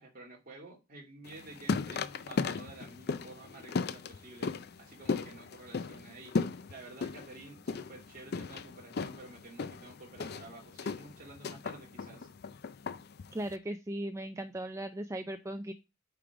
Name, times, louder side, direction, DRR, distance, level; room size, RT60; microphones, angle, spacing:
voice 1, 0.0-12.3, right 2 dB, 45° right, 0 dB, 2.1 m, -51 dB
sound 1, 1.2-13.5, left 4 dB, 50° left, 0.5 m, -37 dB
voice 2, 13.3-15.7, right 1 dB, 15° right, 7 dB, 0.4 m, -37 dB
8.7 x 3.5 x 4.7 m, 0.26 s
head